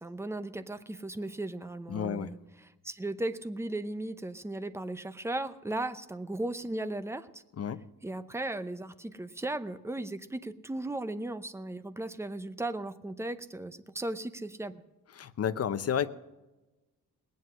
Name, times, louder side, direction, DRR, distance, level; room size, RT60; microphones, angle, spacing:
voice 1, 0.0-7.4 8.0-14.8, right 2 dB, 10° right, 12 dB, 0.7 m, -36 dB
voice 2, 1.9-2.3 7.6-7.8 15.2-16.1, left 8 dB, 45° left, 12 dB, 0.8 m, -31 dB
19.5 x 9.5 x 6.3 m, 1.1 s
wide cardioid pair, 135°, 34 cm